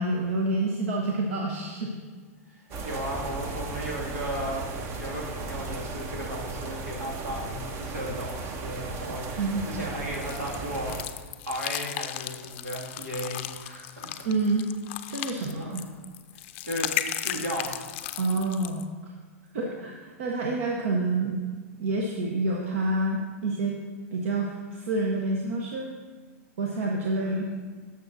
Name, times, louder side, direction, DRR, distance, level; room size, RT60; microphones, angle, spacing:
voice 1, 0.0-2.0 2.7-2.8 9.4-9.6 14.2-14.6 15.1-15.8 18.2-18.8 19.5-21.4 21.8-23.7 24.1-25.9 26.6-27.5, right 2 dB, 65° right, 0 dB, 0.9 m, -28 dB
voice 2, 2.5-4.7 5.0-14.1 15.5-15.9 16.3-16.9 17.2-17.9 19.6-19.8 27.2-27.5, equal, 85° right, -2 dB, 2.1 m, -35 dB
sound 1, 2.7-11.0, right 3 dB, 35° right, 0.8 m, -36 dB
sound 2, 10.1-18.8, left 13 dB, 55° left, 0.5 m, -35 dB
12.0 x 6.8 x 2.6 m, 1.4 s
hypercardioid pair, 110°, 8 cm